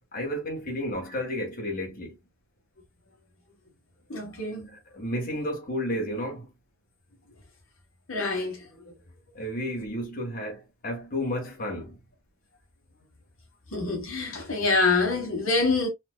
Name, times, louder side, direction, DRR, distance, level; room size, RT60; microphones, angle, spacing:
voice 1, 0.1-2.1 4.7-6.5 9.3-12.0, equal, 45° left, 1.4 m, -32 dB
voice 2, 4.1-4.7 8.1-8.9 13.7-15.9, left 3 dB, 70° left, 1.2 m, -26 dB
4.3 x 2.4 x 2.2 m
head